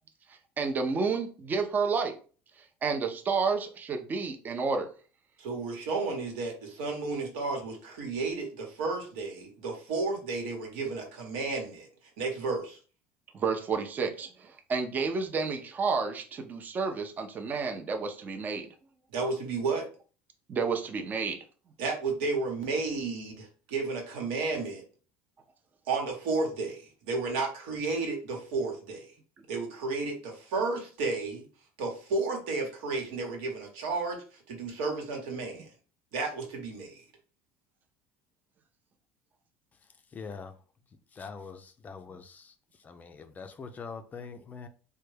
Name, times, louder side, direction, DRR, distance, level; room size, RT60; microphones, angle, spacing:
voice 1, 0.3-2.1 2.6-4.9 13.3-18.7 20.5-21.4, right 5 dB, 30° right, 0.5 m, -30 dB
voice 2, 5.4-11.9 12.2-12.8 19.1-19.9 21.8-24.8 25.9-29.1 29.5-31.4 31.8-34.2 34.5-35.6 36.1-37.0, right 3 dB, 85° right, 1.1 m, -32 dB
voice 3, 40.1-40.5 41.1-42.5 42.8-44.7, left 5 dB, 30° left, 0.4 m, -43 dB
3.3 x 2.2 x 3.2 m
supercardioid pair, 115°, 6 cm